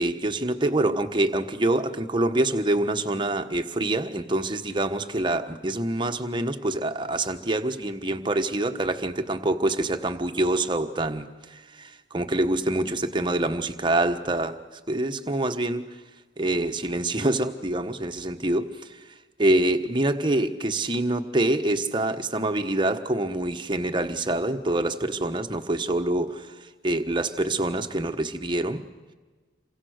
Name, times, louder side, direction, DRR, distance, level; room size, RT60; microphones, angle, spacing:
voice 1, 0.0-14.6 14.9-15.9 16.4-19.0 19.4-28.8, right 1 dB, 25° right, 7 dB, 1.3 m, -26 dB
28.5 x 24.5 x 6.6 m, 1.3 s
head